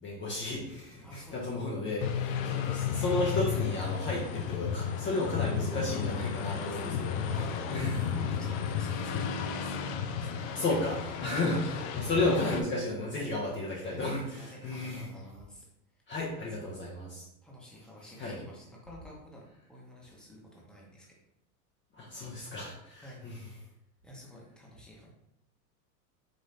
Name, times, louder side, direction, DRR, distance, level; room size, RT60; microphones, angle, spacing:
voice 1, 0.0-8.1 10.4-15.1 16.1-17.3 18.2-18.4 21.9-23.5, left 2 dB, 25° left, -4 dB, 0.8 m, -33 dB
voice 2, 1.0-1.5 2.2-2.4 6.5-7.0 7.3-10.6 11.2-11.3 11.9-12.2 13.1-13.3 13.8-14.0 14.3-15.7 15.9-16.0 16.4-16.7 17.4-21.2 23.0-23.2 24.0-25.1, equal, ahead, -3 dB, 1.0 m, -50 dB
sound 1, 2.0-12.6, left 7 dB, 55° left, 0.6 m, -33 dB
5.2 x 3.0 x 2.8 m, 0.81 s
hypercardioid pair, 115°, 48 cm